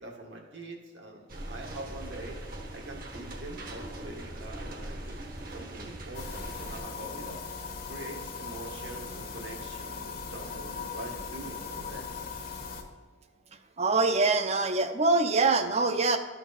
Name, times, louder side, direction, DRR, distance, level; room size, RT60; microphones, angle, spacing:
voice 1, 0.0-2.4 2.7-7.4 7.9-12.1, right 2 dB, 70° right, 1 dB, 1.5 m, -44 dB
sound 1, 1.3-6.8, right 1 dB, 50° right, 1.1 m, -41 dB
sound 2, 6.1-12.8, left 5 dB, 55° left, 1.0 m, -39 dB
voice 2, 13.8-16.2, right 3 dB, 35° right, 8 dB, 0.6 m, -24 dB
12.5 x 4.5 x 4.1 m, 1.5 s
head